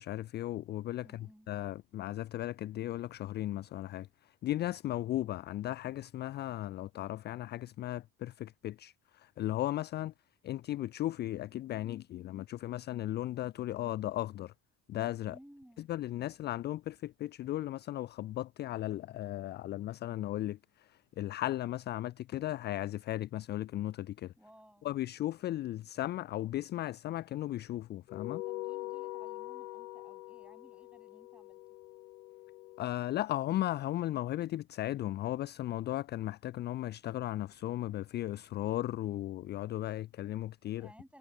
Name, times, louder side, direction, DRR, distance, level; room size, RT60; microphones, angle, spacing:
voice 1, 0.0-10.1 10.4-14.5 14.9-15.4 15.9-24.3 24.8-28.4 32.8-40.9, left 14 dB, 25° left, 0.4 m, -36 dB
voice 2, 1.0-1.5 15.2-15.9 24.4-25.0 28.4-31.6 40.8-41.2, equal, ahead, 7.4 m, -58 dB
sound 1, 28.1-32.9, left 18 dB, 70° left, 0.8 m, -43 dB
figure-of-eight pair, 55°, 50 cm